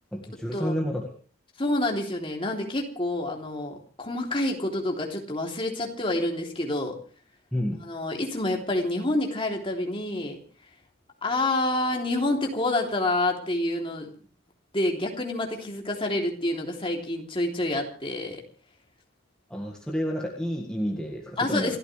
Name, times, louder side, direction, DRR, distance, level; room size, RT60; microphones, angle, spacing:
voice 1, 0.1-1.1 7.5-7.9 19.5-21.8, equal, 5° left, -1 dB, 1.9 m, -30 dB
voice 2, 1.6-7.0 7.8-10.4 11.2-14.1 14.7-18.4 21.4-21.8, left 1 dB, 25° left, 1 dB, 3.1 m, -28 dB
28.5 x 14.0 x 3.4 m, 0.40 s
head